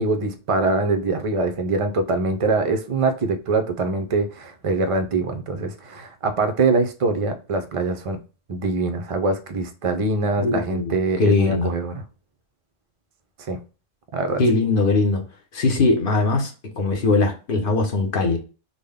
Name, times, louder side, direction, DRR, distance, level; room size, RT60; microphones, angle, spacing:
voice 1, 0.0-8.2 8.5-11.9 13.4-13.6 14.1-14.4, right 3 dB, 50° right, 0.4 m, -23 dB
voice 2, 10.4-11.7 14.4-15.2 15.5-18.4, left 3 dB, 50° left, 0.9 m, -21 dB
3.8 x 2.1 x 3.3 m
omnidirectional pair, 1.3 m